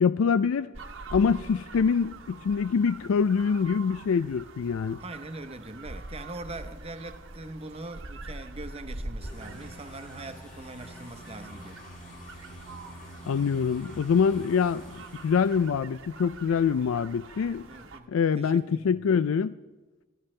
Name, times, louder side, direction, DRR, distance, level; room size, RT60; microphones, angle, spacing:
voice 1, 0.0-0.7 1.1-5.0 13.3-17.7 18.1-19.5, left 6 dB, 80° left, 0.4 m, -25 dB
sound 1, 0.7-18.0, right 2 dB, 70° right, 1.2 m, -44 dB
voice 2, 5.0-11.8 17.7-18.1 18.4-19.1, right 2 dB, 30° right, 1.0 m, -42 dB
sound 2, 9.2-15.7, equal, 40° left, 4.8 m, -47 dB
25.5 x 13.0 x 3.3 m
head